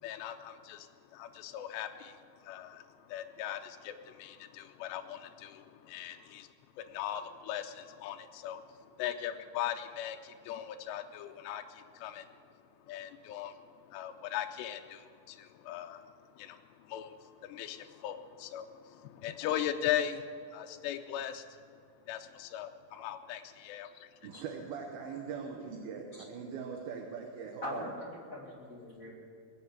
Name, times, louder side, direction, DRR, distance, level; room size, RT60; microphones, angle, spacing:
voice 1, 0.0-21.7 22.1-24.2, left 10 dB, 80° left, 5 dB, 2.7 m, -39 dB
voice 2, 24.2-27.9, right 6 dB, 70° right, 1 dB, 2.7 m, -41 dB
voice 3, 27.6-29.1, left 1 dB, 55° left, -3 dB, 0.9 m, -42 dB
21.5 x 7.4 x 8.1 m, 2.4 s
omnidirectional pair, 5.0 m